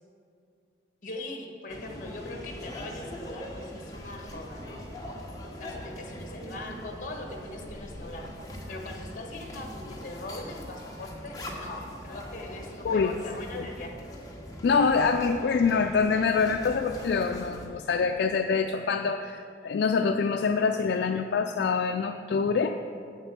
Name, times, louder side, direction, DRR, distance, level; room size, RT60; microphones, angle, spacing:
voice 1, 1.0-4.8 5.6-8.3 8.7-14.1, left 2 dB, 45° left, 2 dB, 1.3 m, -41 dB
sound 1, 1.7-17.7, left 1 dB, 20° left, 1.1 m, -42 dB
voice 2, 14.6-22.8, left 5 dB, 65° left, 6 dB, 0.3 m, -25 dB
8.0 x 7.6 x 6.0 m, 2.5 s
head